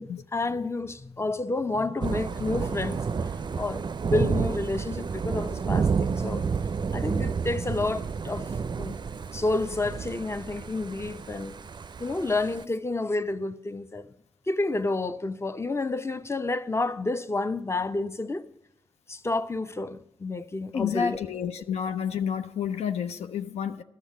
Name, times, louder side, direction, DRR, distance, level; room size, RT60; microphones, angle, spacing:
voice 1, 0.0-6.5 6.9-8.5 8.8-9.0 9.3-11.6 12.0-14.1 14.5-18.4 19.1-21.5, left 2 dB, 25° left, 0.7 m, -30 dB
Thunder / Rain, 2.0-12.6, right 5 dB, 45° right, 0.4 m, -30 dB
voice 2, 20.7-23.8, left 8 dB, 85° left, 0.5 m, -30 dB
11.5 x 6.6 x 8.0 m
supercardioid pair, 40°, 11 cm